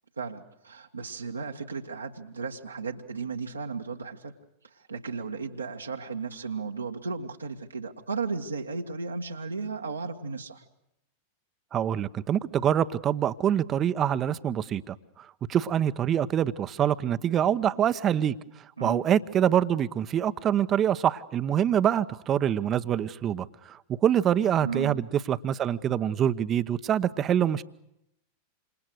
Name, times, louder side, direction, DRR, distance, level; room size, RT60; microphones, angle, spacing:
voice 1, 0.2-4.3 4.9-10.6 18.8-19.0 24.6-25.0, right 4 dB, 80° right, 1.8 m, -35 dB
voice 2, 11.7-18.4 18.8-27.6, right 10 dB, 30° right, 1.0 m, -25 dB
28.0 x 27.5 x 6.6 m
figure-of-eight pair, 90°, 0 cm